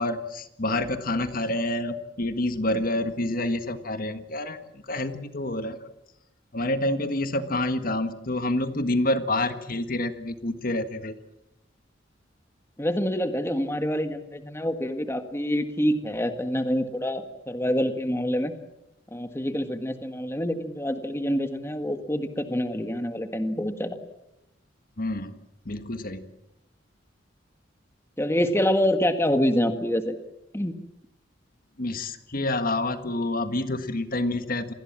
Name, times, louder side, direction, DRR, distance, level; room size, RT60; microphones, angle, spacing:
voice 1, 0.0-4.6 4.9-5.8 6.5-11.1 25.0-25.3 25.6-26.3 31.8-34.7, left 1 dB, 50° left, 9 dB, 1.6 m, -28 dB
voice 2, 12.8-18.5 19.1-24.0 28.2-30.2 30.5-30.7, equal, 15° left, 7 dB, 1.7 m, -26 dB
28.0 x 20.0 x 7.4 m, 0.88 s
head